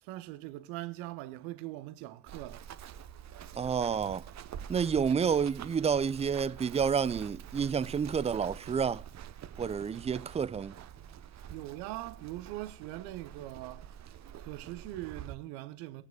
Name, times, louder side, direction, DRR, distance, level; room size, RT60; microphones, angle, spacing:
voice 1, 0.0-2.7 11.5-13.9 14.4-16.0, right 16 dB, 65° right, 1.0 m, -41 dB
Run, 2.3-15.3, right 9 dB, 40° right, 0.9 m, -46 dB
voice 2, 3.5-4.2 4.7-9.0 9.6-10.7, right 6 dB, 15° right, 0.4 m, -29 dB
20.5 x 9.1 x 2.3 m
figure-of-eight pair, 50°, 41 cm